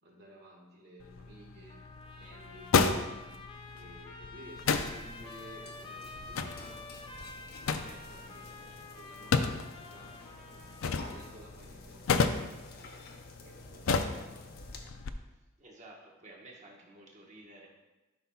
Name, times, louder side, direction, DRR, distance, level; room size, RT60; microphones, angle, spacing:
voice 1, 0.0-1.8 2.1-3.3 3.7-6.9 7.7-12.8 13.3-14.7, right 1 dB, 50° right, -1 dB, 1.7 m, -55 dB
sound 1, 1.0-15.1, left 5 dB, 80° left, 0.5 m, -34 dB
Trumpet, 1.7-11.4, left 3 dB, 25° left, 0.6 m, -49 dB
sound 2, 4.7-14.8, left 2 dB, 50° left, 0.9 m, -51 dB
voice 2, 15.6-17.7, right 2 dB, 35° right, -2 dB, 1.2 m, -52 dB
11.5 x 5.7 x 2.3 m, 1.1 s
head